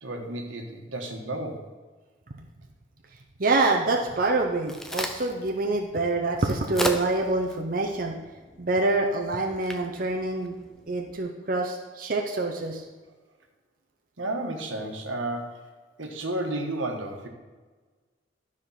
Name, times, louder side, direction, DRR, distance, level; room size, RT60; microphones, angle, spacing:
voice 1, 0.0-1.6 14.2-15.6 16.0-17.3, right 1 dB, 90° right, 3 dB, 1.5 m, -32 dB
voice 2, 3.4-8.1 8.6-10.6 10.9-12.8, right 2 dB, 45° right, 1 dB, 0.8 m, -26 dB
Crack, 4.3-11.2, equal, ahead, 0.6 m, -37 dB
12.5 x 5.0 x 5.8 m, 1.3 s
head